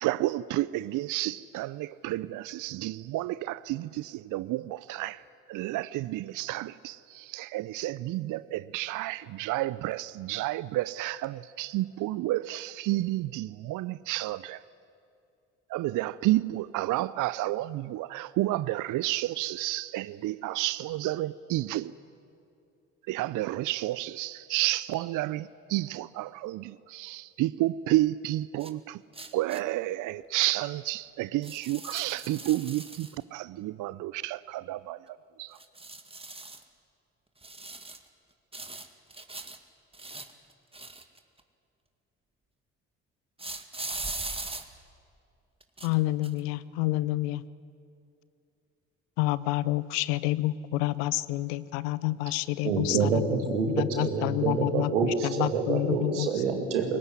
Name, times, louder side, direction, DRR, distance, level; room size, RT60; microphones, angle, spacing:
voice 1, 0.0-5.2 5.5-14.6 15.7-21.9 23.1-29.0 29.3-35.0 35.4-35.6, right 16 dB, 60° right, 18 dB, 0.6 m, -31 dB
sound 1, 28.6-28.7 29.1-29.6 30.4-30.5 31.4-33.2 35.6-36.6 37.4-38.1 38.5-39.6 39.9-41.4 43.4-44.6 45.6-46.0 46.2-46.4, right 2 dB, 15° right, 2.1 m, -40 dB
voice 2, 45.8-47.4 49.2-53.2 53.7-56.3, left 17 dB, 75° left, 18 dB, 0.8 m, -28 dB
voice 3, 52.6-57.0, right 5 dB, 90° right, 4 dB, 2.4 m, -27 dB
22.5 x 19.5 x 9.8 m, 2.6 s
hypercardioid pair, 50°, 35 cm